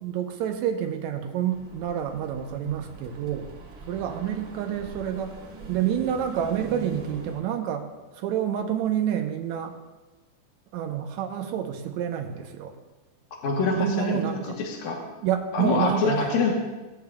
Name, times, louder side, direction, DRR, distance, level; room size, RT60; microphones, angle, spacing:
voice 1, 0.0-3.5 3.9-5.4 5.7-7.9 8.2-9.7 10.7-12.7 13.8-14.6 15.2-16.3, right 9 dB, 75° right, 5 dB, 2.0 m, -28 dB
sound 1, 1.5-7.4, right 3 dB, 35° right, 2.1 m, -42 dB
voice 2, 13.4-15.0 15.5-16.5, left 4 dB, 70° left, -1 dB, 2.4 m, -25 dB
17.5 x 8.5 x 2.3 m, 1.2 s
omnidirectional pair, 3.7 m